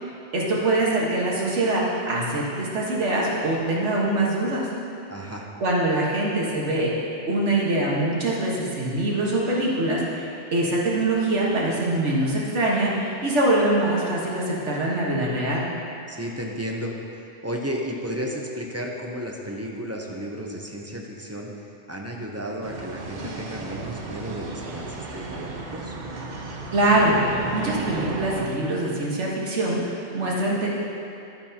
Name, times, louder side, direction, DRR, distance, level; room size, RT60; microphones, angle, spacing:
voice 1, 0.0-4.7 5.6-7.0 7.3-15.7 26.7-30.7, right 1 dB, 85° right, -4 dB, 1.8 m, -23 dB
voice 2, 5.1-5.5 16.1-17.0 17.4-21.5 21.9-26.0, equal, 15° right, -1 dB, 0.6 m, -33 dB
sound 1, 22.6-28.5, right 3 dB, 45° right, 0.8 m, -34 dB
11.5 x 9.0 x 2.9 m, 2.7 s
omnidirectional pair, 1.2 m